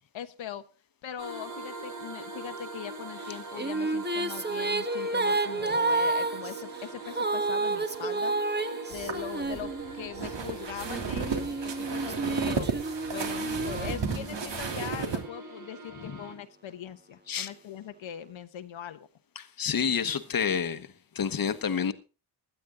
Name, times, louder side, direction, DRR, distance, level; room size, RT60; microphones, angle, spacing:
voice 1, 0.1-0.6 1.0-8.3 8.9-12.7 13.1-19.1, left 9 dB, 85° left, 1.1 m, -41 dB
sound 1, 1.2-16.3, right 3 dB, 40° right, 5.9 m, -42 dB
Female singing, 3.2-10.2 10.9-14.6, right 3 dB, 20° right, 1.4 m, -30 dB
sound 2, 8.9-15.2, right 5 dB, 70° right, 3.1 m, -34 dB
voice 2, 19.4-20.9 21.1-21.9, left 7 dB, 50° left, 1.2 m, -29 dB
17.0 x 11.5 x 3.8 m
wide cardioid pair, 105°, 45 cm